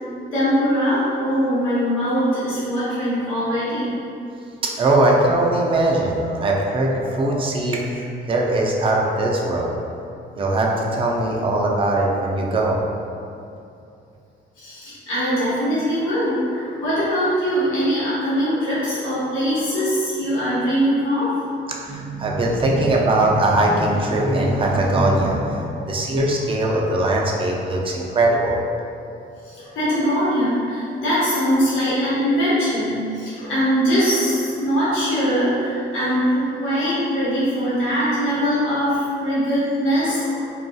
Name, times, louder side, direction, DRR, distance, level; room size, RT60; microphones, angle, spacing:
voice 1, 0.3-3.9 14.6-21.3 22.7-22.8 26.7-26.8 29.4-40.4, equal, 90° left, -11 dB, 1.0 m, -22 dB
voice 2, 4.6-9.7 10.3-12.8 21.7-28.6, right 2 dB, 25° right, -1 dB, 0.4 m, -20 dB
2.3 x 2.3 x 2.6 m, 2.6 s
cardioid pair, 90°, 20 cm